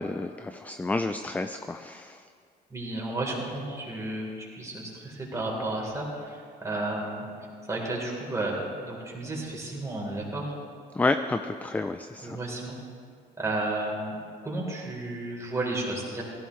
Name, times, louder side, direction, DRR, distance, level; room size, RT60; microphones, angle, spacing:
voice 1, 0.0-2.2 10.9-12.4, left 2 dB, 10° left, 8 dB, 0.4 m, -30 dB
voice 2, 2.7-7.3 7.7-10.5 12.2-12.8 13.4-14.2 14.4-16.2, right 2 dB, 20° right, -3 dB, 3.9 m, -32 dB
17.5 x 15.0 x 3.2 m, 2.1 s
cardioid pair, 110°, 17 cm